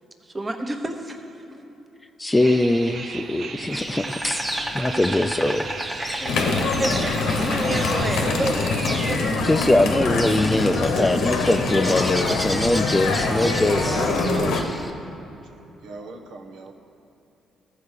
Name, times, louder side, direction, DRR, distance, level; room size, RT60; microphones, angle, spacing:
voice 1, 0.2-1.7 6.3-9.2 10.5-10.6 13.3-14.6, right 1 dB, 20° right, 5 dB, 1.0 m, -30 dB
voice 2, 2.2-4.4 4.7-5.7 9.4-14.0, left 1 dB, 15° left, 8 dB, 0.4 m, -22 dB
sound 1, 2.3-9.1, right 5 dB, 60° right, 0.6 m, -37 dB
Insect, 3.7-14.9, equal, 5° right, 0.9 m, -32 dB
sound 2, 6.2-14.6, left 3 dB, 80° left, 0.9 m, -24 dB
voice 3, 13.7-15.5 15.8-16.7, right 3 dB, 90° right, 3 dB, 1.0 m, -36 dB
14.0 x 4.8 x 6.5 m, 3.0 s
cardioid pair, 90°, 0 cm